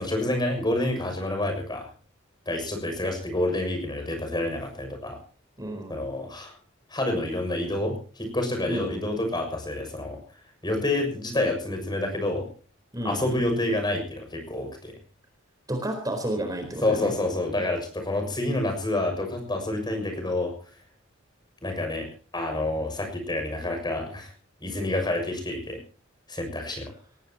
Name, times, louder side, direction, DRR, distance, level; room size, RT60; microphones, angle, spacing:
voice 1, 0.0-1.9 2.4-5.2 5.9-6.6 6.9-10.2 10.6-12.5 13.0-15.0 16.8-20.5 21.6-24.3 24.6-25.8 26.3-26.9, left 1 dB, 25° left, 5 dB, 6.7 m, -28 dB
voice 2, 5.6-5.9 8.7-9.0 12.9-13.4 15.7-17.1, right 1 dB, 20° right, 5 dB, 4.2 m, -31 dB
23.0 x 19.5 x 3.0 m, 0.38 s
head